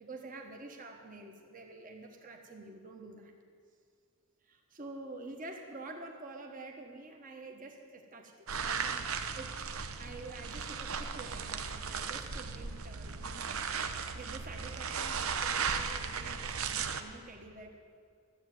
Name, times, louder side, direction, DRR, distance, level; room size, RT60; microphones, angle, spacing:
voice 1, 0.0-3.3 4.4-9.6 10.0-13.6 14.0-17.8, right 2 dB, 40° right, 2 dB, 1.3 m, -48 dB
sound 1, 8.5-17.0, right 6 dB, 75° right, 0.8 m, -36 dB
13.0 x 7.8 x 9.4 m, 2.2 s
head